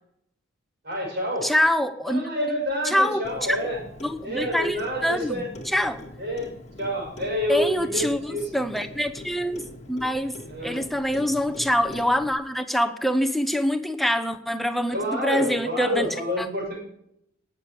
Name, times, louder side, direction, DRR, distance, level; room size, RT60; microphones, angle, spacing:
voice 1, 0.8-1.5 2.1-3.8 4.2-5.5 6.2-6.5 6.8-8.5 10.5-10.8 14.9-16.8, equal, 50° right, 0 dB, 6.4 m, -28 dB
voice 2, 1.4-2.4 2.8-3.6 4.0-6.0 7.5-10.3 10.6-16.5, equal, ahead, 8 dB, 0.8 m, -25 dB
Clock, 3.2-12.3, left 1 dB, 35° left, 1.6 m, -43 dB
19.0 x 6.9 x 5.1 m, 0.75 s
head